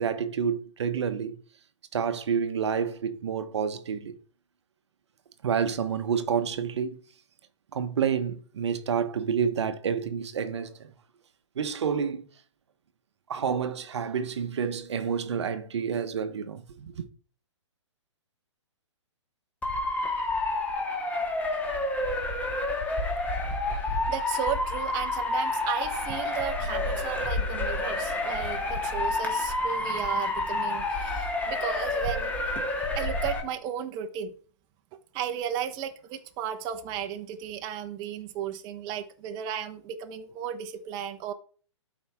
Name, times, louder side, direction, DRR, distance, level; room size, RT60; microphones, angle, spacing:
voice 1, 0.0-1.4 1.9-4.1 5.4-7.0 7.7-10.9 11.6-12.2 13.3-17.0, right 7 dB, 60° right, 1.0 m, -29 dB
Motor vehicle (road) / Siren, 19.6-33.4, left 2 dB, 10° left, 1.7 m, -29 dB
voice 2, 24.1-32.3 32.9-34.3 35.1-41.3, right 9 dB, 25° right, 1.0 m, -34 dB
12.5 x 4.9 x 3.5 m
figure-of-eight pair, 125°, 16 cm